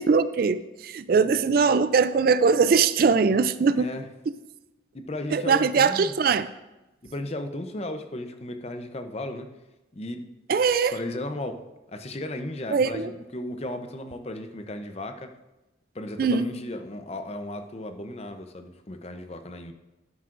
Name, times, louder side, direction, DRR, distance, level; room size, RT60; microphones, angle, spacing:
voice 1, 0.0-3.9 5.3-6.5 10.5-11.0 12.7-13.1 16.2-16.4, right 5 dB, 50° right, 14 dB, 0.3 m, -21 dB
voice 2, 3.8-4.1 4.9-6.1 7.0-9.5 9.9-10.3 10.9-11.6 11.9-15.3 15.9-19.7, left 1 dB, 35° left, 7 dB, 0.6 m, -35 dB
12.0 x 9.7 x 2.5 m, 1.0 s
head